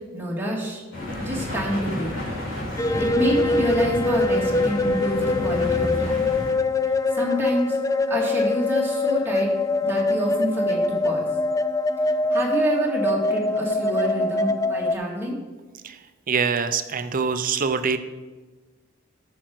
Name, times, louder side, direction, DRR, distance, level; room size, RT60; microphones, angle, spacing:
voice 1, 0.1-0.8 1.2-2.2 3.0-6.2 7.1-7.8 8.1-9.5 9.8-10.8 11.0-11.3 12.3-15.4, equal, 10° right, -3 dB, 2.2 m, -27 dB
sound 1, 0.9-6.5, left 1 dB, 70° left, 3.6 m, -31 dB
sound 2, 2.8-14.9, left 2 dB, 15° left, 0.3 m, -23 dB
voice 2, 16.3-18.0, right 5 dB, 45° right, 10 dB, 0.6 m, -24 dB
13.0 x 6.2 x 4.7 m, 1.3 s
head